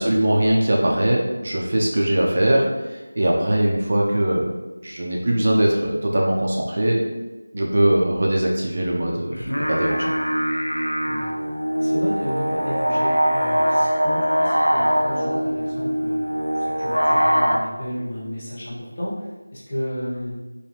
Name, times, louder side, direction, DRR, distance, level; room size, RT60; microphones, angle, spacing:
voice 1, 0.0-2.7 3.2-4.5 4.8-7.0 7.5-10.1, right 1 dB, 35° right, -2 dB, 0.4 m, -21 dB
sound 1, 9.3-17.6, equal, 90° left, 0.4 m, -22 dB
voice 2, 11.8-16.2 16.5-19.3 19.5-20.4, equal, 35° left, -8 dB, 0.8 m, -32 dB
2.7 x 2.3 x 3.2 m, 1.2 s
figure-of-eight pair, 170°, 0 cm